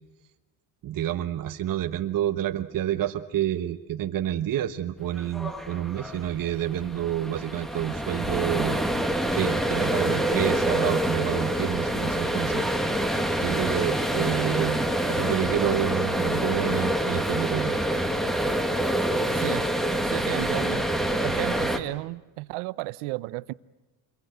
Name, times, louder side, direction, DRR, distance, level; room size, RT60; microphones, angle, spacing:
voice 1, 0.8-8.9 9.3-13.0 13.4-17.8, right 11 dB, 45° right, 1.2 m, -29 dB
sound 1, 5.1-21.8, right 1 dB, ahead, 1.7 m, -26 dB
voice 2, 19.3-19.7 20.0-20.9 21.2-23.5, right 21 dB, 85° right, 0.9 m, -33 dB
27.0 x 23.0 x 7.9 m
cardioid pair, 125°, 48 cm